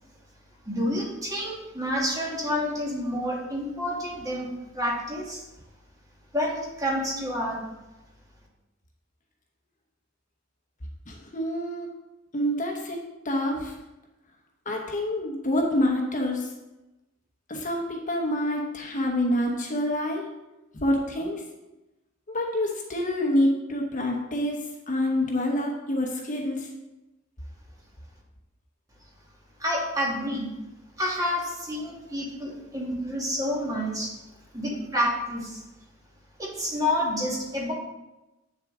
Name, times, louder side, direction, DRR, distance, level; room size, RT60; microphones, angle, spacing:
voice 1, 0.6-5.5 6.3-7.6 29.6-30.5 31.0-34.1 34.5-35.6 36.4-37.7, left 1 dB, 15° right, -2 dB, 1.7 m, -29 dB
voice 2, 11.1-11.9 12.3-13.0 13.2-13.7 14.7-16.5 17.5-20.3 20.7-21.4 22.3-24.6 24.9-26.7, left 1 dB, 40° left, 1 dB, 1.1 m, -27 dB
8.1 x 6.6 x 3.7 m, 1.0 s
head